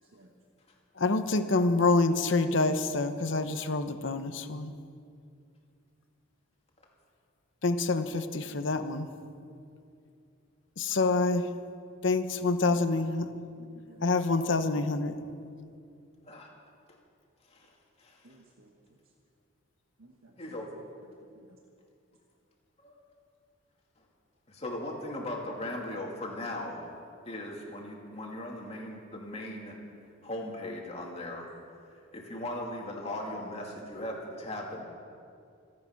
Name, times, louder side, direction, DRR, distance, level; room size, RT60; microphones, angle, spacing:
voice 1, 1.0-4.7 7.6-9.1 10.8-11.5 12.0-13.3 14.0-15.2, left 3 dB, 60° left, 9 dB, 0.8 m, -27 dB
voice 2, 13.5-14.3 18.2-18.7 20.0-20.5 21.3-21.5, right 2 dB, 85° right, 0 dB, 1.4 m, -56 dB
voice 3, 20.4-20.7 22.8-23.0 24.5-26.9 27.2-29.8 30.2-31.5 31.9-34.8, left 1 dB, 30° left, -1 dB, 2.4 m, -38 dB
26.0 x 8.7 x 5.9 m, 2.5 s
head